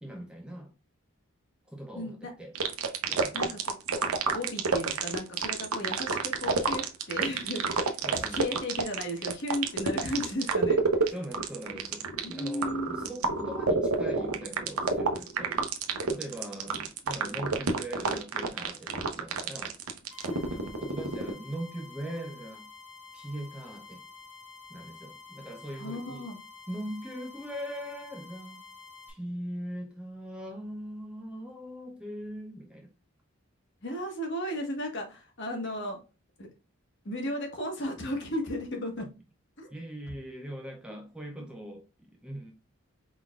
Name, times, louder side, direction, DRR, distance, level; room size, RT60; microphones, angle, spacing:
voice 1, 0.0-0.7 1.7-2.5 3.1-3.6 8.0-8.6 11.1-15.6 16.1-19.7 20.5-22.7 23.1-24.0 24.7-26.3 26.7-28.6 29.1-32.9 39.7-42.5, equal, 5° right, 0.6 m, -41 dB
voice 2, 1.9-2.3 3.3-4.0 4.3-11.1 12.2-13.2 20.3-20.5 25.8-26.4 33.8-36.0 36.4-36.5 37.0-39.1 39.6-39.7 41.4-41.5, equal, 50° left, 1.4 m, -35 dB
sound 1, 2.6-21.3, right 4 dB, 80° right, 0.8 m, -29 dB
sound 2, 20.1-29.1, left 5 dB, 75° left, 2.1 m, -49 dB
4.6 x 3.8 x 2.3 m
head